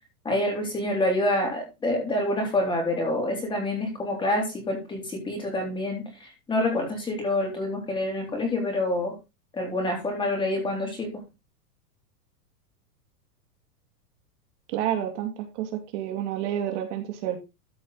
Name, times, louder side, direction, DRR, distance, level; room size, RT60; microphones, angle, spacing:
voice 1, 0.3-9.2 9.5-11.2, left 1 dB, 10° left, 1 dB, 3.6 m, -27 dB
voice 2, 14.7-17.4, right 10 dB, 45° right, 3 dB, 2.8 m, -29 dB
14.0 x 5.3 x 4.0 m, 0.25 s
supercardioid pair, 165°, 47 cm